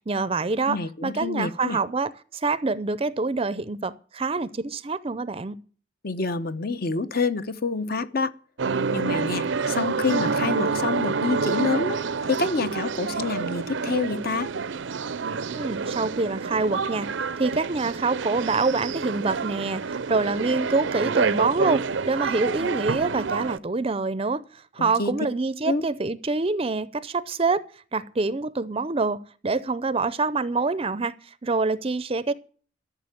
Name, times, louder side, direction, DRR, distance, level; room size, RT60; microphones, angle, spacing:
voice 1, 0.1-5.6 15.5-17.1 17.4-24.4 24.7-27.6 27.9-31.1 31.4-32.3, right 3 dB, 30° right, 0.6 m, -26 dB
voice 2, 0.7-1.8 6.0-8.3 8.9-12.0 12.3-14.5 24.8-25.1 25.6-25.8, left 4 dB, 50° left, 0.9 m, -27 dB
sound 1, 8.6-23.6, right 5 dB, 70° right, 0.6 m, -28 dB
14.0 x 6.7 x 9.9 m
head